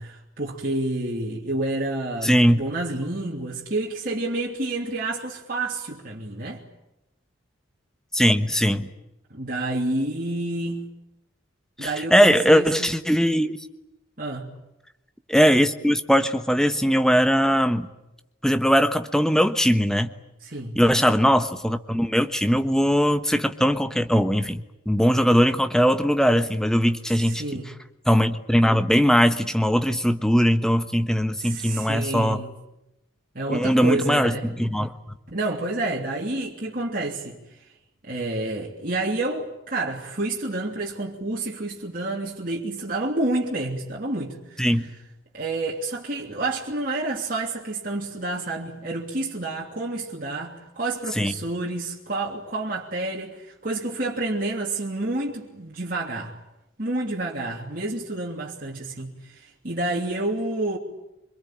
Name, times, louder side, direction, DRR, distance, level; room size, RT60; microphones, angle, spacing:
voice 1, 0.0-6.6 9.3-10.8 11.8-12.9 14.2-14.5 20.4-20.8 27.1-27.7 31.4-32.5 33.3-34.5 35.3-37.7 38.0-44.9 45.3-56.3 56.8-60.8, right 2 dB, 45° right, 3.1 m, -29 dB
voice 2, 2.2-2.6 8.1-8.9 11.8-13.6 15.3-17.9 18.4-20.1 20.7-27.4 28.1-32.4 33.5-34.9 44.6-44.9 51.2-51.3, equal, 5° left, 1.2 m, -20 dB
26.0 x 24.0 x 9.0 m
head